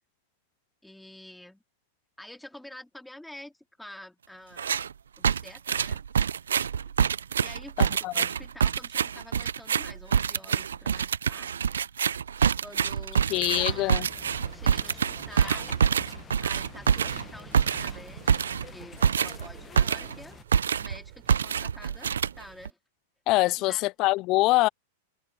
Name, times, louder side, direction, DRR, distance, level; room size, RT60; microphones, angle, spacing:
voice 1, 0.8-1.6 2.2-4.8 5.2-6.0 7.4-11.5 12.6-14.1 14.5-15.8 16.4-20.4 20.7-22.8 23.6-23.8, left 1 dB, 5° left, 2.8 m, -48 dB
sound 1, 4.6-4.9 5.2-20.2 20.5-21.0 21.3-22.7, right 7 dB, 85° right, 0.6 m, -26 dB
voice 2, 7.8-8.1 13.3-14.1 23.3-24.7, left 21 dB, 45° left, 0.5 m, -24 dB
sound 2, 13.3-20.4, left 6 dB, 20° left, 1.3 m, -47 dB
sound 3, 16.9-22.7, right 37 dB, 55° right, 4.0 m, -56 dB
hypercardioid pair, 105°, 0 cm